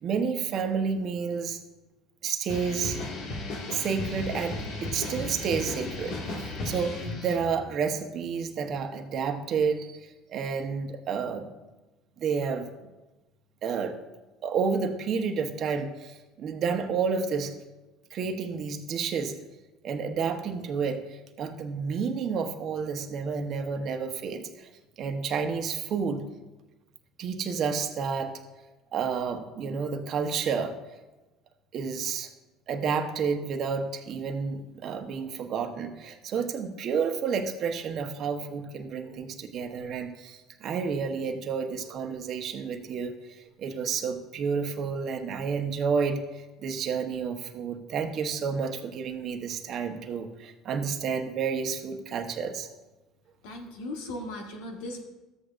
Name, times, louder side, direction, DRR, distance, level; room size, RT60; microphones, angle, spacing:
voice 1, 0.0-1.6 2.2-3.0 3.7-11.5 12.2-12.7 13.6-14.0 14.4-17.5 18.1-19.3 19.8-24.7 25.0-26.2 27.2-28.3 28.9-30.8 31.7-32.3 32.7-52.7, right 6 dB, 50° right, 5 dB, 1.0 m, -30 dB
sound 1, 2.5-7.5, left 2 dB, 70° left, 1.9 m, -35 dB
voice 2, 53.4-55.0, left 1 dB, 85° left, 2 dB, 1.5 m, -37 dB
13.5 x 8.0 x 2.5 m, 1.1 s
supercardioid pair, 100°, 0 cm